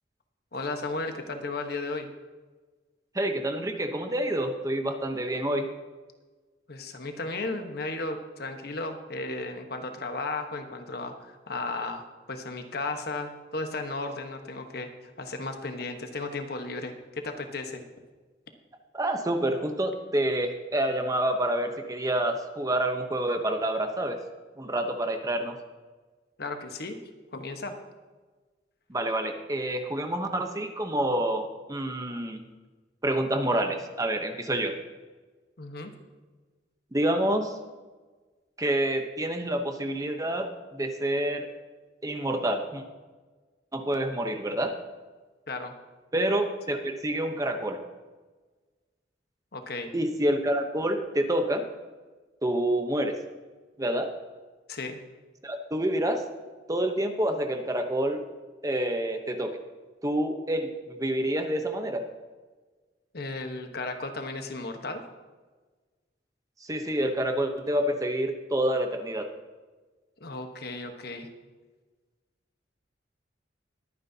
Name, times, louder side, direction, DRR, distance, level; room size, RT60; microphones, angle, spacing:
voice 1, 0.5-2.1 6.7-17.8 26.4-27.0 27.3-27.8 35.6-35.9 45.5-45.7 49.5-49.9 54.7-55.0 63.1-65.0 70.2-71.3, left 3 dB, 55° left, 5 dB, 1.2 m, -35 dB
voice 2, 3.1-5.7 18.9-24.2 24.6-25.6 28.9-32.4 33.0-34.7 36.9-37.6 38.6-41.5 42.0-42.8 43.7-44.7 46.1-47.8 49.9-51.6 52.4-53.2 53.8-54.1 55.4-56.2 56.7-58.2 58.6-59.5 60.0-62.0 66.6-69.3, right 1 dB, 20° right, 5 dB, 0.8 m, -28 dB
21.5 x 9.5 x 2.8 m, 1.3 s
head